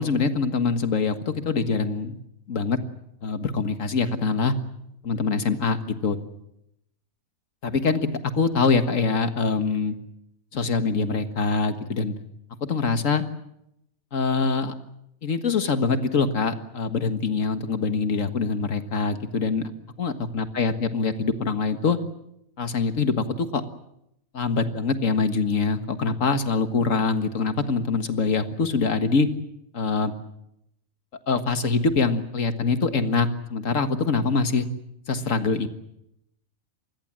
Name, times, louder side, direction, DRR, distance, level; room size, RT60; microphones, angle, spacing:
voice 1, 0.0-2.1 2.5-2.8 3.2-4.5 5.0-6.2 7.6-8.1 8.3-10.0 10.5-12.1 12.7-13.2 14.1-14.7 15.2-19.7 20.0-22.0 22.6-23.6 24.3-29.3 29.7-30.1 31.3-34.7 35.1-35.7, left 4 dB, 70° left, 9 dB, 2.0 m, -24 dB
27.0 x 20.5 x 7.6 m, 0.81 s
omnidirectional pair, 1.4 m